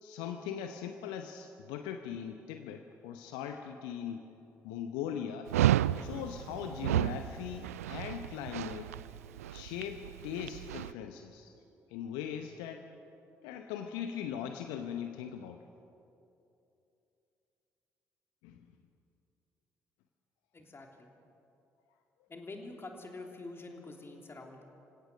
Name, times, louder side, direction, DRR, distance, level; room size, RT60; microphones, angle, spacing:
voice 1, 0.0-4.3 4.6-5.5 6.0-8.9 9.5-11.5 11.9-12.9 13.4-15.6 18.4-18.7, left 8 dB, 70° left, 6 dB, 0.8 m, -40 dB
Dog, 5.5-10.9, right 13 dB, 85° right, 0.4 m, -32 dB
voice 2, 20.5-21.1 22.3-24.6, left 2 dB, 30° left, 2 dB, 3.3 m, -46 dB
27.0 x 17.0 x 6.3 m, 2.8 s
figure-of-eight pair, 45°, 8 cm